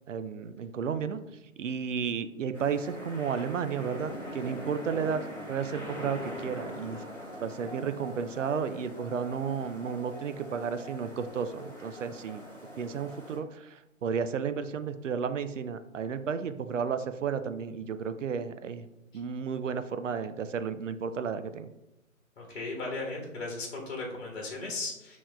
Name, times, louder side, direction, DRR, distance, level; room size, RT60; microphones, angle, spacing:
voice 1, 0.1-1.2 1.6-7.0 7.4-12.4 12.8-18.9 19.1-21.7, right 6 dB, 65° right, 11 dB, 0.5 m, -33 dB
sound 1, 2.5-13.4, equal, 15° right, 0.8 m, -42 dB
voice 2, 22.4-25.2, left 3 dB, 50° left, -1 dB, 1.2 m, -36 dB
6.9 x 3.0 x 2.2 m, 0.94 s
figure-of-eight pair, 150°, 41 cm